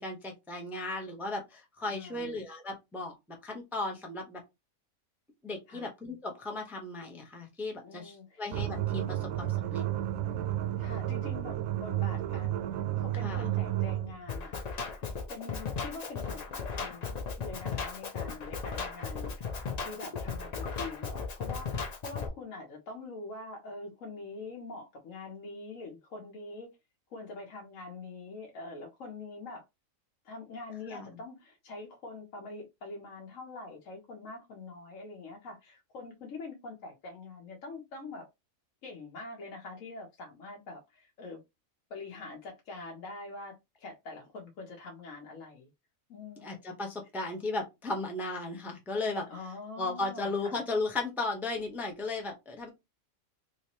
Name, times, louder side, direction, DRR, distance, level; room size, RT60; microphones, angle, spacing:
voice 1, 0.0-3.1 3.4-4.4 5.4-9.8 13.2-13.4 30.9-31.2 46.4-49.2 49.8-52.7, left 2 dB, ahead, 0.5 m, -36 dB
voice 2, 1.9-2.4 5.7-5.9 7.8-8.4 10.8-12.6 13.0-14.6 15.3-17.0 17.4-19.5 19.8-26.7 27.1-29.6 30.2-38.3 38.8-41.4 41.9-45.7 46.1-46.7 49.3-50.6, left 3 dB, 70° left, 1.2 m, -44 dB
sound 1, 8.5-14.2, right 13 dB, 85° right, 1.0 m, -32 dB
Drum kit, 14.3-22.3, left 5 dB, 50° left, 0.5 m, -36 dB
3.3 x 2.9 x 2.9 m
omnidirectional pair, 1.4 m